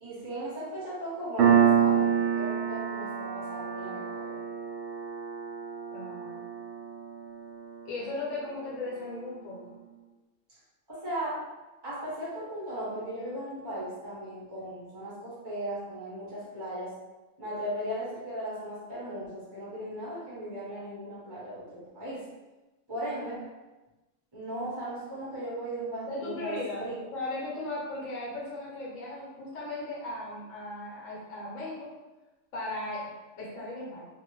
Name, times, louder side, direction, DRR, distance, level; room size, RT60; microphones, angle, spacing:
voice 1, 0.0-4.4 10.9-11.4 11.8-16.9 17.4-22.2 22.9-23.5 24.3-27.0, right 1 dB, 20° right, -9 dB, 0.9 m, -37 dB
Piano, 1.4-8.6, right 8 dB, 65° right, 0.8 m, -28 dB
voice 2, 5.9-6.4 7.8-9.6 26.1-31.9 32.5-33.0 33.4-34.0, left 2 dB, 90° left, -6 dB, 1.3 m, -37 dB
2.6 x 2.5 x 3.0 m, 1.1 s
omnidirectional pair, 1.3 m